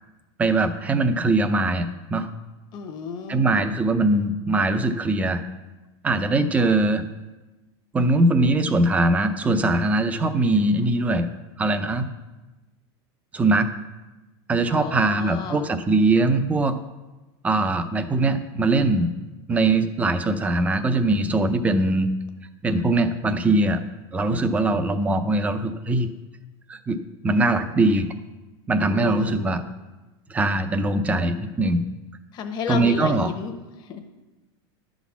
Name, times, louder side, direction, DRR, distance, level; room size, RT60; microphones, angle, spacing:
voice 1, 0.4-2.3 3.3-5.4 6.0-7.0 7.9-11.3 11.6-12.1 13.3-13.7 14.5-16.7 17.4-19.1 19.5-22.1 22.6-23.8 24.1-26.1 26.7-27.0 27.2-28.1 28.7-29.6 30.3-31.8 32.7-33.3, right 2 dB, 10° right, 9 dB, 0.4 m, -21 dB
voice 2, 2.7-3.7 6.6-6.7 14.7-15.7 28.9-29.6 32.3-34.0, left 6 dB, 30° left, 5 dB, 1.0 m, -33 dB
11.0 x 4.1 x 7.1 m, 1.1 s
supercardioid pair, 160°, 14 cm